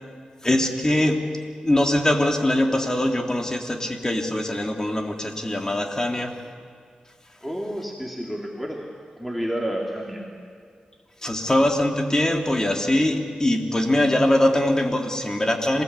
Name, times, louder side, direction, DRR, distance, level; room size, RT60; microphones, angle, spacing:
voice 1, 0.4-1.3 1.6-6.4 11.2-15.8, left 1 dB, 20° left, 2 dB, 3.1 m, -22 dB
voice 2, 7.4-8.9 9.2-10.2, equal, ahead, -2 dB, 3.2 m, -30 dB
27.0 x 18.5 x 8.4 m, 2.2 s
cardioid pair, 70°, 3 cm